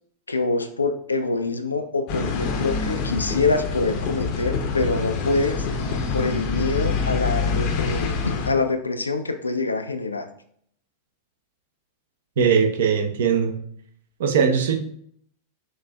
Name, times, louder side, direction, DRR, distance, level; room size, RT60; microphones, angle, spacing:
voice 1, 0.3-5.7 6.1-10.3, left 3 dB, 80° left, 7 dB, 0.3 m, -25 dB
sound 1, 2.1-8.5, left 4 dB, 45° left, 0.6 m, -26 dB
voice 2, 12.4-13.5 14.2-14.8, right 6 dB, 60° right, 4 dB, 0.6 m, -20 dB
6.2 x 2.5 x 2.2 m, 0.64 s
figure-of-eight pair, 90°, 0 cm